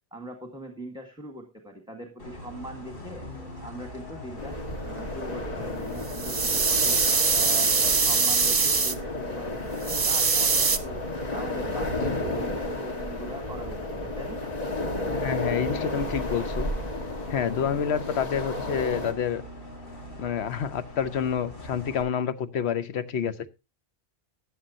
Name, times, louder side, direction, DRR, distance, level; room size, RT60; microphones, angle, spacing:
voice 1, 0.1-3.3 3.6-7.0 7.3-11.0 11.3-14.4, right 1 dB, 5° right, 1.6 m, -41 dB
Bus, 2.2-22.0, left 1 dB, 55° left, 3.6 m, -43 dB
sound 1, 4.4-19.1, left 1 dB, 35° left, 1.6 m, -32 dB
sound 2, 6.1-9.0 9.8-10.8, right 5 dB, 35° right, 1.0 m, -23 dB
voice 2, 15.1-16.7 17.3-19.4 20.2-23.5, left 8 dB, 75° left, 1.1 m, -28 dB
15.0 x 10.0 x 2.7 m
omnidirectional pair, 1.1 m